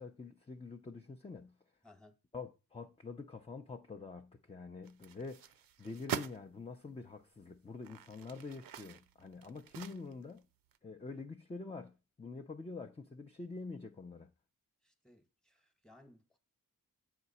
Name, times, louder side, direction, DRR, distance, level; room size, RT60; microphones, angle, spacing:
voice 1, 0.0-1.6 2.3-10.4 10.8-14.3, left 3 dB, 15° left, 0.6 m, -46 dB
voice 2, 1.8-2.1 14.8-16.4, left 2 dB, ahead, 1.2 m, -62 dB
sound 1, 4.8-6.4 7.1-7.2 7.7-10.4 10.7-10.8, right 8 dB, 75° right, 0.6 m, -44 dB
8.0 x 4.9 x 4.2 m
cardioid pair, 75°, 35 cm